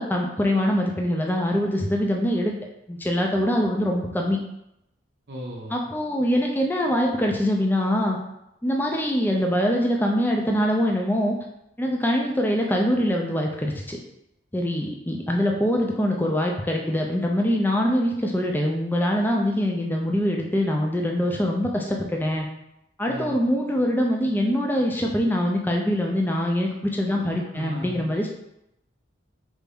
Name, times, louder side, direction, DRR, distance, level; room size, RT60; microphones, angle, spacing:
voice 1, 0.0-2.5 2.9-4.4 5.7-8.2 8.6-11.4 11.8-14.0 14.5-22.5 23.0-28.3, equal, 10° left, 0 dB, 0.4 m, -23 dB
voice 2, 5.3-5.8 23.1-23.4 27.1-28.0, right 1 dB, 55° right, -2 dB, 0.7 m, -36 dB
3.3 x 2.6 x 3.4 m, 0.82 s
head